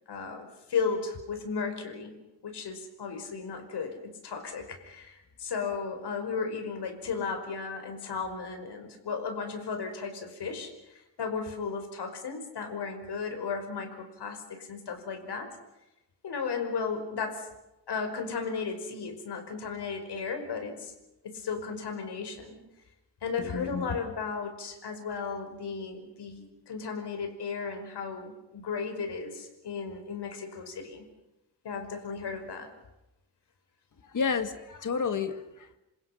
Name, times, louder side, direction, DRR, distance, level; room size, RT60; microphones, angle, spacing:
voice 1, 0.1-15.5 16.2-17.5 17.9-20.9 21.2-22.6 23.2-31.1 31.6-32.7, left 5 dB, 65° left, 6 dB, 5.2 m, -35 dB
voice 2, 23.4-24.0 34.0-35.8, left 5 dB, 45° left, 9 dB, 2.2 m, -31 dB
27.5 x 27.0 x 5.8 m, 0.93 s
wide cardioid pair, 125°, 44 cm